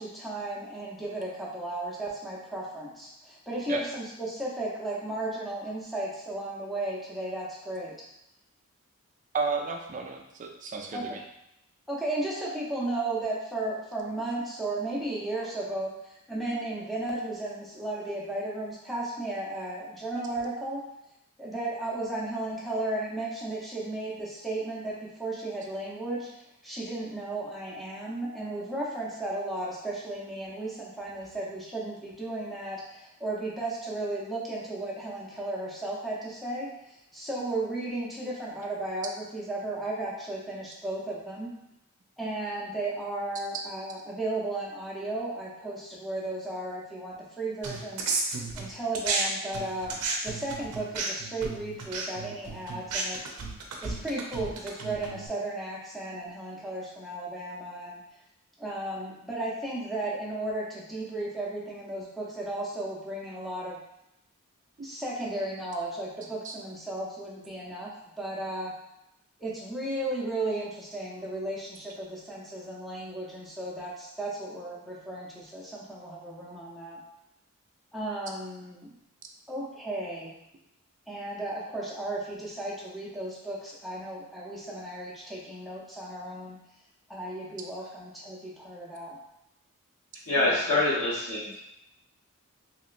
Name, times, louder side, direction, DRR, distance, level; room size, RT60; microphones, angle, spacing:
voice 1, 0.0-8.0 10.9-11.2 11.9-20.8 21.4-41.5 42.2-48.1 48.5-50.0 50.2-53.3 53.8-58.0 58.6-63.8 64.8-67.9 68.2-68.7 69.4-77.0 77.9-79.0 79.5-80.3 81.1-86.6 87.1-89.2 90.4-90.6, right 2 dB, ahead, -6 dB, 0.6 m, -34 dB
voice 2, 9.3-11.2 43.5-43.6 64.8-64.9 66.4-66.5, right 4 dB, 35° right, 3 dB, 0.4 m, -33 dB
sound 1, 47.6-49.2 49.5-55.3, right 4 dB, 90° right, 0.5 m, -33 dB
voice 3, 90.3-91.6, left 2 dB, 65° left, -13 dB, 1.0 m, -25 dB
3.0 x 2.9 x 2.5 m, 0.84 s
head